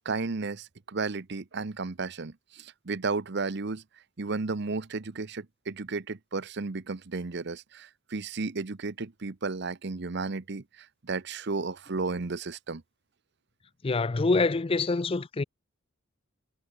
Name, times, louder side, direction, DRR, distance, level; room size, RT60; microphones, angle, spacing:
voice 1, 0.0-3.8 4.2-12.8, right 4 dB, 55° right, 0.8 m, -33 dB
voice 2, 13.8-15.4, left 3 dB, 25° left, 0.5 m, -25 dB
head